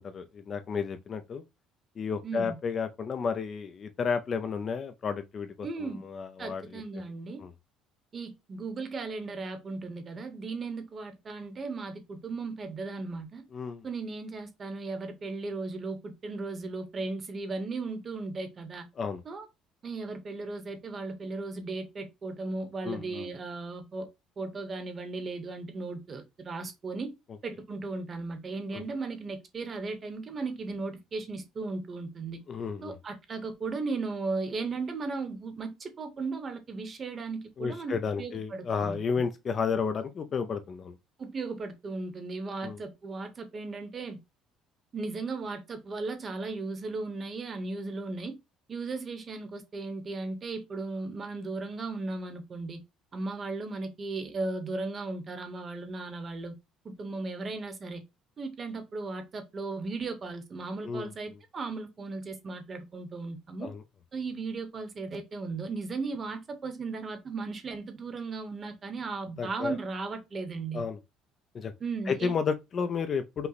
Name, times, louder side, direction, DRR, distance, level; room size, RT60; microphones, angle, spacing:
voice 1, 0.0-1.4 2.0-6.8 7.4-7.5 13.5-13.9 19.0-19.2 22.8-23.3 28.7-28.8 32.5-32.9 37.6-41.0 42.6-42.8 60.8-61.1 63.6-63.8 69.4-69.8 70.7-71.0 71.5-71.7 72.1-73.5, left 5 dB, 30° left, 0.4 m, -32 dB
voice 2, 2.2-2.6 5.6-6.0 6.4-7.4 8.1-13.4 13.8-18.8 19.2-19.5 19.8-24.1 24.4-27.1 27.4-32.4 32.8-39.0 41.2-44.2 44.9-48.3 48.7-52.8 53.1-56.5 56.8-58.0 58.4-63.7 64.1-70.8 71.8-72.4, right 3 dB, 25° right, 0.9 m, -36 dB
5.5 x 2.1 x 4.0 m
cardioid pair, 170°, 0 cm